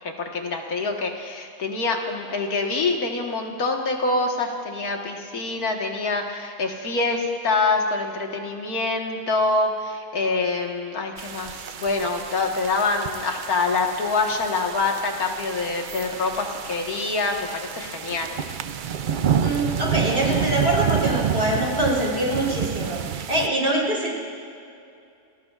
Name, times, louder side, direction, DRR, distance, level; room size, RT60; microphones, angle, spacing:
voice 1, 0.0-18.3, left 3 dB, 85° left, 1 dB, 2.0 m, -25 dB
Rain and thunder short, 11.2-23.5, right 8 dB, 90° right, 0.4 m, -29 dB
voice 2, 19.4-24.1, right 1 dB, 40° right, -4 dB, 4.0 m, -24 dB
28.0 x 20.0 x 2.5 m, 2.5 s
omnidirectional pair, 1.5 m